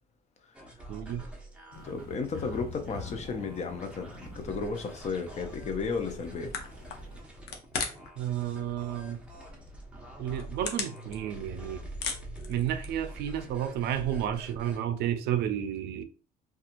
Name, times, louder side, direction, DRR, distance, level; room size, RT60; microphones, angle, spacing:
sound 1, 0.5-14.8, right 1 dB, 5° right, 0.8 m, -45 dB
voice 1, 0.9-1.2 8.2-9.2 10.2-11.8 12.5-16.0, right 10 dB, 75° right, 0.4 m, -31 dB
sound 2, 1.7-7.2, left 3 dB, 60° left, 1.3 m, -46 dB
voice 2, 1.8-6.5, left 4 dB, 40° left, 0.6 m, -34 dB
sound 3, 6.5-8.2 8.5-9.1 9.5-9.6 10.1-11.6 11.8-13.1, left 5 dB, 80° left, 0.7 m, -36 dB
2.8 x 2.3 x 2.5 m
cardioid pair, 110°, 17 cm